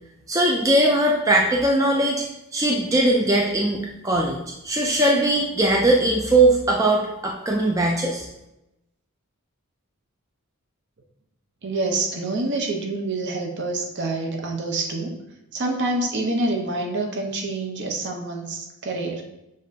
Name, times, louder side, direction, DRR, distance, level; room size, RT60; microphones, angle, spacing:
voice 1, 0.3-2.3 2.5-4.4 4.6-8.3, right 1 dB, 15° right, -1 dB, 0.3 m, -20 dB
voice 2, 11.6-15.2 15.5-19.2, right 2 dB, 50° right, 2 dB, 0.6 m, -27 dB
6.4 x 2.4 x 2.6 m, 0.89 s
head